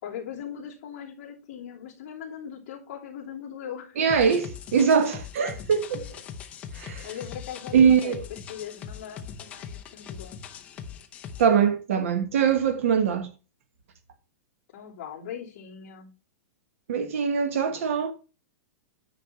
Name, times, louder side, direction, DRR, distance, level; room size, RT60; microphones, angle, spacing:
voice 1, 0.0-4.2 5.9-6.1 7.0-10.4 14.7-16.1, left 9 dB, 35° left, 2.8 m, -40 dB
voice 2, 4.0-6.0 6.7-7.1 7.7-8.2 11.4-13.3 16.9-18.1, right 7 dB, 60° right, 1.5 m, -22 dB
sound 1, 4.1-11.5, left 7 dB, 15° left, 0.6 m, -41 dB
9.7 x 5.7 x 4.4 m
supercardioid pair, 175°, 8 cm